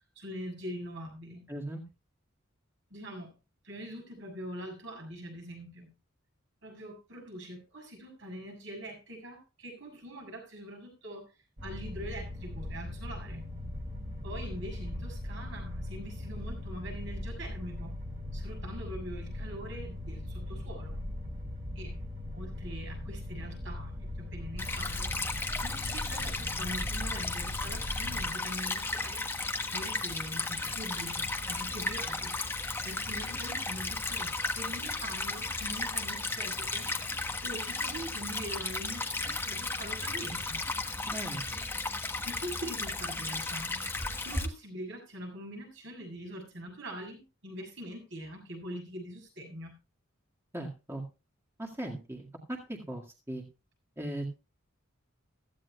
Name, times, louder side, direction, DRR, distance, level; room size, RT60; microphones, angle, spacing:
voice 1, 0.1-1.4 2.9-3.4 3.6-5.9 6.6-11.3 11.6-13.4 14.2-17.9 18.3-21.0 21.7-22.0 22.3-25.1 25.6-29.2 29.7-32.3 32.8-36.9 37.4-40.6 42.2-43.8 44.2-49.7, right 1 dB, 65° right, 2 dB, 6.9 m, -43 dB
voice 2, 1.5-1.8 41.1-41.4 50.5-51.0 51.6-53.4 54.0-54.3, right 1 dB, 15° right, -1 dB, 1.9 m, -38 dB
sound 1, 11.6-28.3, left 1 dB, 40° right, 4.2 m, -39 dB
Stream / Trickle dribble, 24.6-44.5, left 3 dB, 10° left, 1.1 m, -34 dB
16.5 x 14.5 x 2.3 m, 0.30 s
head